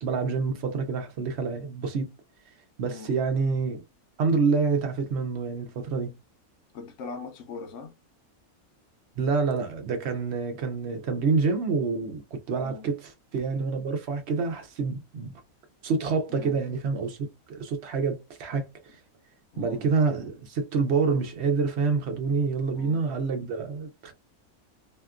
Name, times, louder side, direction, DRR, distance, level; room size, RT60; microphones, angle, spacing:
voice 1, 0.0-2.1 2.8-3.8 4.2-6.1 9.2-15.3 15.8-17.2 17.5-18.7 19.6-24.1, right 4 dB, 55° right, 0.8 m, -27 dB
voice 2, 6.7-8.0 12.6-12.9 16.3-16.6 19.5-19.9 22.7-23.0, left 4 dB, 60° left, 1.0 m, -41 dB
2.8 x 2.4 x 2.3 m
omnidirectional pair, 1.6 m